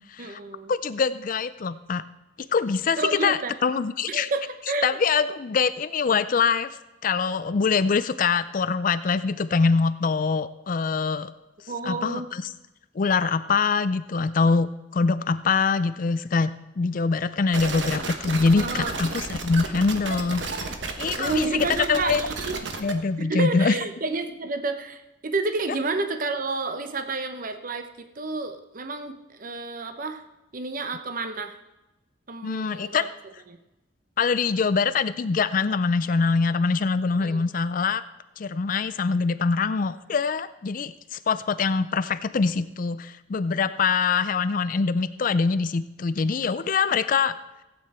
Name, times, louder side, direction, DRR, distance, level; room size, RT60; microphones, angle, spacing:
voice 1, 0.2-0.7 3.0-3.5 4.1-5.0 11.7-12.3 18.6-18.9 21.2-22.6 23.2-30.2 30.5-31.6 32.3-32.9 33.5-33.6 37.2-37.4, right 3 dB, 45° right, 7 dB, 0.8 m, -30 dB
voice 2, 0.7-2.0 2.5-4.3 4.8-6.7 7.0-11.3 11.9-12.4 13.0-16.5 16.8-20.4 21.0-22.2 22.8-23.8 32.4-33.0 34.2-38.0 38.4-47.3, left 5 dB, 45° left, 13 dB, 0.4 m, -24 dB
sound 1, 17.5-22.9, right 3 dB, 70° right, 1.3 m, -32 dB
16.0 x 8.7 x 4.3 m, 1.0 s
head